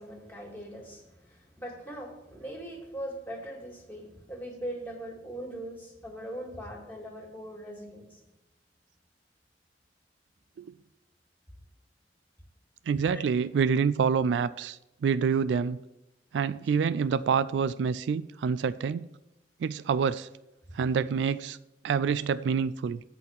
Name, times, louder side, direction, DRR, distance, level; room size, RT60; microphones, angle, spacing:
voice 1, 0.0-8.0 13.1-13.2, right 1 dB, 10° left, 1.9 m, -40 dB
voice 2, 12.9-15.8 16.3-19.1 19.6-20.3 20.7-21.6 21.8-23.0, right 6 dB, 85° right, 0.3 m, -27 dB
8.4 x 4.2 x 7.1 m
head